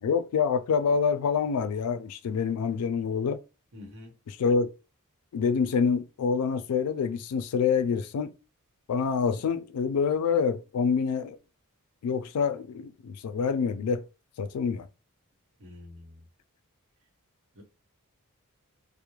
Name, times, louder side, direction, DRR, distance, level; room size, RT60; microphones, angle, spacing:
voice 1, 0.0-3.4 4.3-4.7 5.3-8.3 8.9-11.4 12.0-14.0 14.4-14.9, left 6 dB, 80° left, 0.3 m, -26 dB
voice 2, 3.7-4.1 15.6-16.2 17.5-17.6, left 2 dB, 65° right, 0.9 m, -46 dB
2.3 x 2.0 x 3.0 m
head